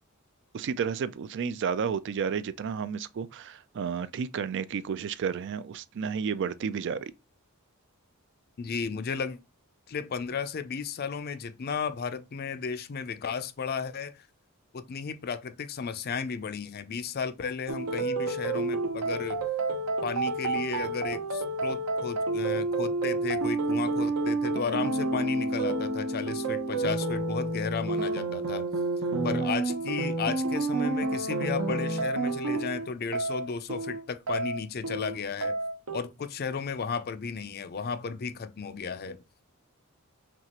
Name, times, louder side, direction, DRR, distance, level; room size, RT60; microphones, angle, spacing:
voice 1, 0.5-7.1, right 6 dB, 55° right, 0.3 m, -31 dB
voice 2, 8.6-9.4 9.9-14.3 14.7-19.4 20.0-28.7 29.2-35.6 35.9-39.2, left 5 dB, 45° left, 0.4 m, -34 dB
sound 1, 17.7-36.0, right 3 dB, 70° right, 0.8 m, -29 dB
5.9 x 2.4 x 2.9 m
head